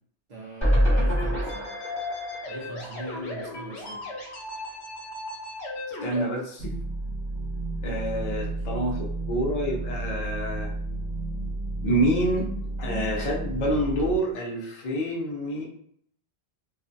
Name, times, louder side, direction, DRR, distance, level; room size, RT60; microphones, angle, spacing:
voice 1, 0.3-1.7 2.5-4.1 8.0-8.6, right 1 dB, 50° right, -4 dB, 0.6 m, -41 dB
sound 1, 0.6-3.8 4.2-4.3 4.5-4.6, equal, 25° left, 1.0 m, -26 dB
sound 2, 1.2-6.2, left 2 dB, 80° left, 0.9 m, -36 dB
voice 2, 6.0-6.7 7.8-10.7 11.8-12.5 12.8-15.6, right 1 dB, 50° left, -3 dB, 0.7 m, -27 dB
sound 3, 6.6-14.2, right 2 dB, 75° right, 0.9 m, -32 dB
2.4 x 2.2 x 2.6 m, 0.65 s
omnidirectional pair, 1.1 m